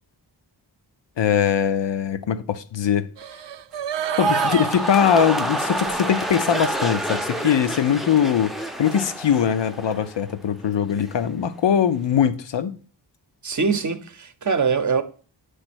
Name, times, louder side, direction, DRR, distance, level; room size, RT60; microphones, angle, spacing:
voice 1, 1.2-3.1 4.2-8.5 8.8-12.8, left 8 dB, 85° left, 0.7 m, -21 dB
sound 1, 3.2-6.2 6.7-6.8, right 10 dB, 80° right, 0.6 m, -30 dB
sound 2, 4.0-10.3 10.6-11.1, right 1 dB, ahead, 0.6 m, -28 dB
voice 2, 13.4-15.0, right 5 dB, 45° right, 0.7 m, -23 dB
9.7 x 3.3 x 6.0 m
wide cardioid pair, 105°, 42 cm